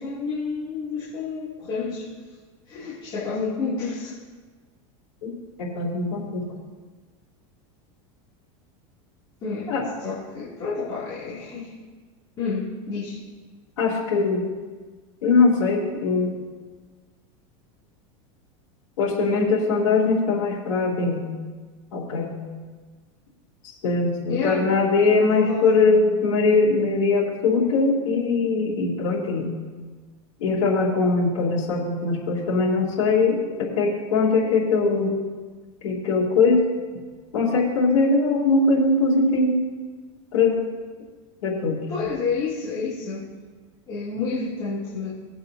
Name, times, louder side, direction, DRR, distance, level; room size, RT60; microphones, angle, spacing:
voice 1, 0.0-2.1 2.7-4.1 9.4-9.7 10.0-11.7 12.4-13.2 24.3-24.7 25.1-25.7 41.9-43.3 43.9-45.1, left 4 dB, 30° left, -10 dB, 2.5 m, -29 dB
voice 2, 5.6-6.5 9.7-9.8 13.8-14.5 15.2-16.4 19.0-21.2 21.9-22.3 23.6-29.6 30.4-35.1 35.8-36.6 37.3-39.6 40.3-40.6 41.4-41.8, left 3 dB, 85° left, -5 dB, 3.0 m, -21 dB
18.5 x 8.0 x 2.7 m, 1.4 s
supercardioid pair, 155°, 16 cm